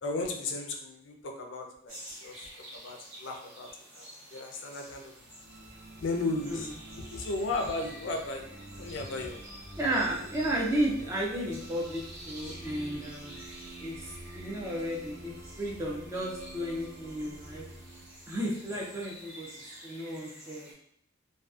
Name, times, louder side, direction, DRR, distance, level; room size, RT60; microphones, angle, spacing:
voice 1, 0.0-2.5 2.8-3.7 3.9-5.1 6.0-6.7 7.1-9.5, left 2 dB, 60° left, 3 dB, 0.4 m, -35 dB
sound 1, 1.9-20.7, right 1 dB, 85° right, 1.1 m, -50 dB
sound 2, 5.1-19.5, right 1 dB, 50° right, 1.1 m, -48 dB
voice 2, 9.8-13.3 13.8-17.6 18.3-20.7, right 1 dB, 15° right, -4 dB, 0.3 m, -33 dB
2.5 x 2.3 x 2.3 m, 0.69 s
head